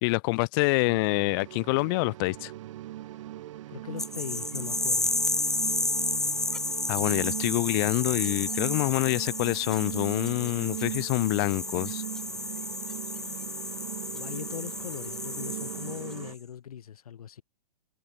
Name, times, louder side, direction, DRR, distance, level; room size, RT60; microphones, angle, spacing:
voice 1, 0.0-2.5 6.9-12.0, left 28 dB, 35° left, 1.0 m, -26 dB
sound 1, 0.8-16.4, right 14 dB, 50° right, 2.1 m, -40 dB
voice 2, 3.7-5.1 13.1-13.4 14.1-17.4, left 9 dB, 60° left, 5.7 m, -40 dB
sound 2, 4.0-16.3, left 2 dB, ahead, 0.3 m, -32 dB
figure-of-eight pair, 115°, 21 cm